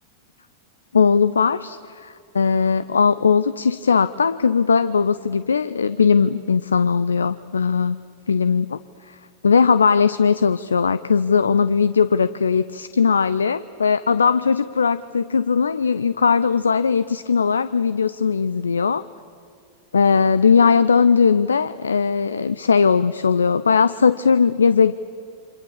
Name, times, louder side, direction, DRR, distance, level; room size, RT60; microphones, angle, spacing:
voice 1, 0.9-8.0 8.3-8.8 9.1-9.2 9.4-19.0 19.9-24.9, left 5 dB, 75° left, 16 dB, 0.5 m, -19 dB
29.0 x 25.5 x 7.4 m, 2.5 s
figure-of-eight pair, 90°, 0 cm